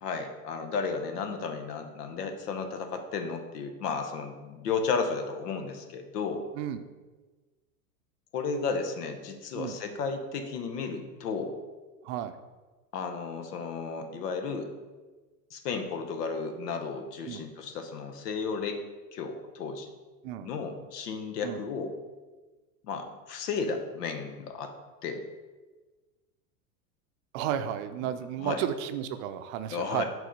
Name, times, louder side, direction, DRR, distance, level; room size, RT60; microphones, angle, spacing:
voice 1, 0.0-6.4 8.3-11.5 12.9-14.7 15.5-18.8 19.1-19.9 20.4-21.9 22.8-24.7 25.0-25.2 28.4-28.6 29.7-30.0, left 5 dB, 85° left, 6 dB, 1.0 m, -33 dB
voice 2, 27.3-30.0, right 10 dB, 50° right, 9 dB, 0.5 m, -33 dB
4.9 x 3.8 x 5.2 m, 1.3 s
hypercardioid pair, 115°, 46 cm